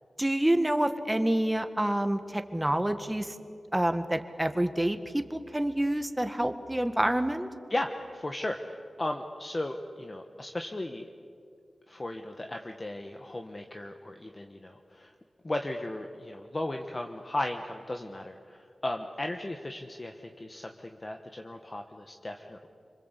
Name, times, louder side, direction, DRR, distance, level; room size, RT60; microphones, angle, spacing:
voice 1, 0.2-3.3 3.7-7.5, right 1 dB, 10° right, 8 dB, 1.6 m, -27 dB
voice 2, 7.7-11.1 11.9-15.1 15.4-22.7, left 1 dB, 30° left, 4 dB, 1.4 m, -36 dB
27.5 x 25.5 x 8.3 m, 2.3 s
wide cardioid pair, 115°, 0 cm